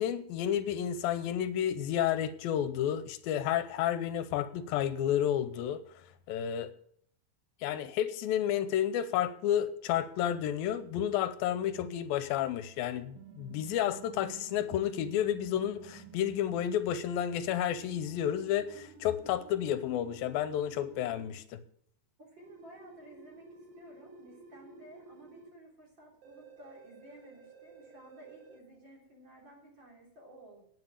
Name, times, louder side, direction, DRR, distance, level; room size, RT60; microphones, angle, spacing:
voice 1, 0.0-5.8 6.3-6.7 7.6-21.6, left 10 dB, 85° left, 13 dB, 2.5 m, -31 dB
sound 1, 13.2-16.6 17.7-21.2 22.4-25.5 26.2-28.6, right 5 dB, 70° right, 3.6 m, -53 dB
voice 2, 22.2-23.5 23.8-30.6, right 1 dB, 30° right, -2 dB, 3.9 m, -54 dB
9.5 x 8.1 x 8.7 m, 0.63 s
omnidirectional pair, 4.2 m